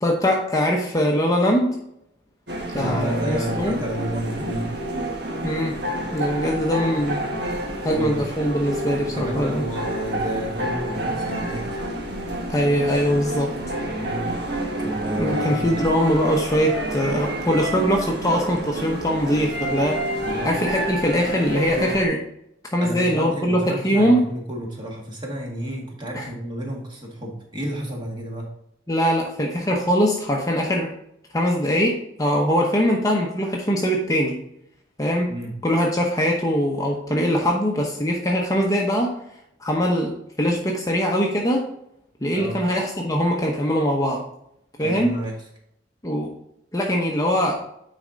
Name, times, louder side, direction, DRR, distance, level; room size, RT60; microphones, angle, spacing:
voice 1, 0.0-1.8 2.7-3.8 5.4-5.8 6.1-7.2 7.8-9.6 12.5-13.5 15.1-20.0 20.4-22.2 22.7-24.2 26.1-26.3 28.9-30.9 31.3-34.4 35.0-35.3 35.6-39.1 39.6-41.7 42.2-44.2 44.8-45.1 46.0-46.3 46.7-47.6, equal, 20° left, 0 dB, 0.8 m, -22 dB
sound 1, 2.5-22.1, right 1 dB, 60° right, 1.6 m, -29 dB
voice 2, 2.8-4.8 6.4-6.6 7.9-8.3 9.0-11.8 13.9-14.4 14.8-15.8 20.2-20.6 22.8-28.5 35.3-35.6 42.3-42.6 44.8-45.4, right 1 dB, 25° right, -1 dB, 1.8 m, -31 dB
9.6 x 4.2 x 3.8 m, 0.77 s
head